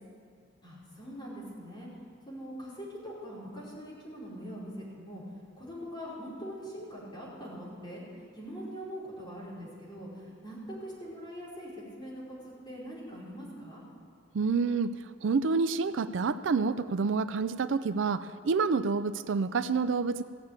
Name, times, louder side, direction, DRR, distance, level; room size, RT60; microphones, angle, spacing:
voice 1, 0.6-1.9 2.3-5.2 5.5-8.0 8.3-13.8, equal, 25° left, -7 dB, 4.7 m, -42 dB
voice 2, 14.3-14.9 15.2-20.2, right 4 dB, 70° right, 13 dB, 0.4 m, -28 dB
16.5 x 7.3 x 8.8 m, 2.2 s
head